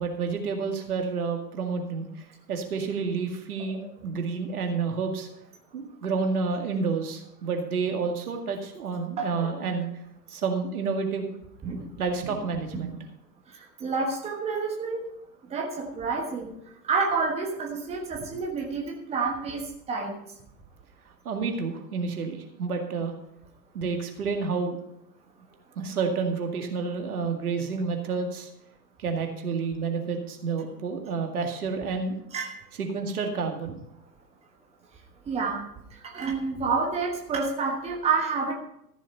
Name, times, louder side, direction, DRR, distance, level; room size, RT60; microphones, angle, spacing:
voice 1, 0.0-5.3 5.7-9.9 10.3-11.4 12.0-13.0 21.2-23.1 23.7-24.8 25.8-28.5 29.0-32.2 32.8-33.8, right 5 dB, 60° right, 3 dB, 2.2 m, -29 dB
voice 2, 9.2-9.5 11.6-11.9 12.7-12.9 13.5-15.0 15.5-16.5 16.9-19.6 19.9-20.1 32.3-32.5 35.3-35.6 36.0-38.6, right 4 dB, 10° right, 1 dB, 1.3 m, -28 dB
14.0 x 7.2 x 5.5 m, 0.77 s
figure-of-eight pair, 105°, 50 cm